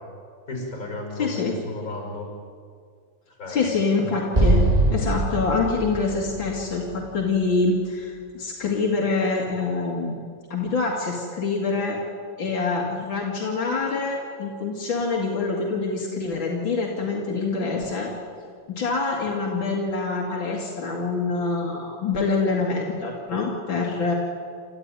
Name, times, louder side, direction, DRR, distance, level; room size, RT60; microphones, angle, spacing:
voice 1, 0.5-2.3 3.4-3.7, left 2 dB, 45° left, 1 dB, 6.1 m, -34 dB
voice 2, 1.1-1.6 3.5-4.6 4.9-10.2 10.5-12.0 12.4-18.1 18.7-24.1, left 4 dB, 80° left, -2 dB, 3.0 m, -25 dB
Explosion, 4.3-7.6, right 2 dB, 20° right, 1.9 m, -23 dB
29.0 x 13.0 x 9.6 m, 2.2 s
omnidirectional pair, 2.1 m